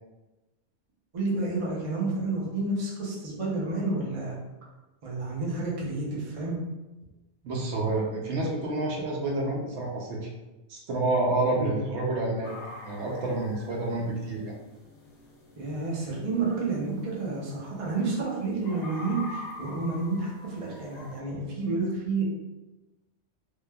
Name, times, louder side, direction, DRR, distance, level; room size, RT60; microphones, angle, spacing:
voice 1, 1.1-4.4 5.0-6.6 11.5-11.8 15.6-22.2, right 3 dB, 40° right, -5 dB, 0.6 m, -30 dB
voice 2, 7.4-10.3 10.7-12.5 12.8-14.5, right 2 dB, 75° right, -1 dB, 0.9 m, -29 dB
sound 1, 12.4-21.2, left 2 dB, 75° left, 0.9 m, -46 dB
3.1 x 2.1 x 2.2 m, 1.1 s
omnidirectional pair, 1.2 m